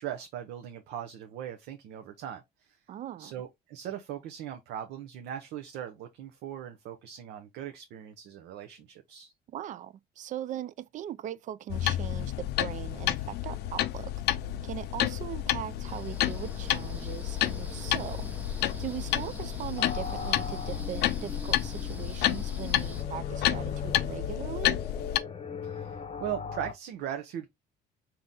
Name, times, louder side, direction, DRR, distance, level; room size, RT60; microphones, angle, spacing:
voice 1, 0.0-2.8 3.2-9.3 25.6-27.5, right 10 dB, 85° right, 0.7 m, -39 dB
voice 2, 2.9-3.3 9.5-14.1 14.6-18.3 18.8-24.8, right 11 dB, 50° right, 0.4 m, -40 dB
sound 1, 11.7-25.2, left 13 dB, 75° left, 0.4 m, -30 dB
sound 2, 15.8-23.0, right 2 dB, 10° right, 0.9 m, -45 dB
sound 3, 19.8-26.7, left 5 dB, 35° left, 0.7 m, -39 dB
3.8 x 2.8 x 3.6 m
cardioid pair, 110°, 17 cm